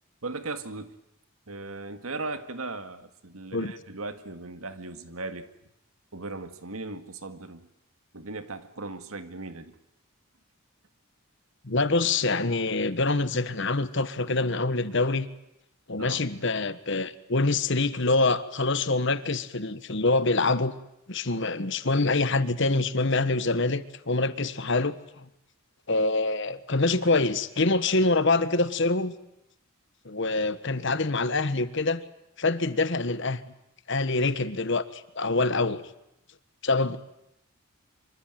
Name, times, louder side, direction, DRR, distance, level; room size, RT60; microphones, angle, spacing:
voice 1, 0.2-0.9 1.5-5.5 6.1-7.7 8.1-9.8 16.0-16.2, right 3 dB, 80° right, 2.0 m, -37 dB
voice 2, 11.6-15.3 15.9-20.7 21.1-24.9 25.9-29.1 30.0-32.0 32.4-33.4 33.9-35.8 36.6-37.0, left 3 dB, 55° left, 1.4 m, -25 dB
25.5 x 24.5 x 9.3 m
head